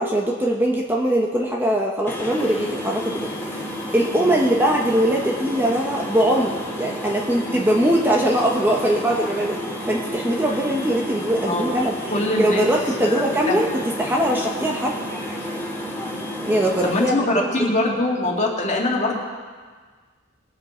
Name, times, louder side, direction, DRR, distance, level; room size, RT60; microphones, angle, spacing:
voice 1, 0.0-3.7 3.9-11.9 12.4-14.9 16.4-17.7, right 1 dB, 10° right, -1 dB, 0.9 m, -21 dB
sound 1, 2.1-17.1, equal, 10° left, 2.1 m, -31 dB
voice 2, 12.1-12.7 13.1-13.6 16.8-19.2, left 2 dB, 35° left, -2 dB, 2.1 m, -23 dB
21.0 x 7.6 x 4.4 m, 1.5 s
head